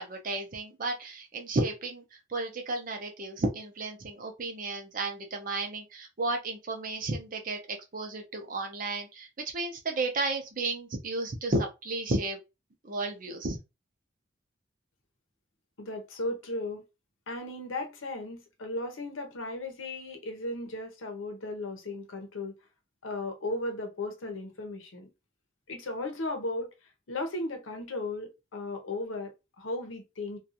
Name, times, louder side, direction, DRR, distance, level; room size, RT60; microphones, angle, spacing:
voice 1, 0.0-2.0 2.3-12.4 12.8-13.6, right 2 dB, 45° right, 0.6 m, -33 dB
voice 2, 15.8-16.8 17.3-22.5 23.0-25.1 25.7-26.7 27.1-30.4, left 2 dB, 90° left, 0.7 m, -36 dB
2.5 x 2.3 x 2.7 m
head